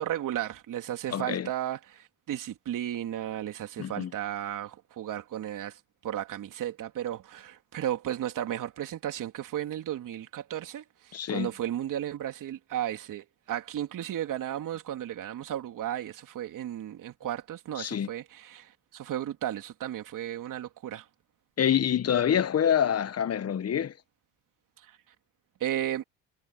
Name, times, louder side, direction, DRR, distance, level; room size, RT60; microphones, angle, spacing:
voice 1, 0.0-21.1 24.8-24.9 25.6-26.0, right 11 dB, 55° right, 3.4 m, -34 dB
voice 2, 1.1-1.5 3.8-4.1 11.1-11.5 17.8-18.1 21.6-23.9, left 9 dB, 40° left, 1.5 m, -26 dB
hypercardioid pair, 65°, 37 cm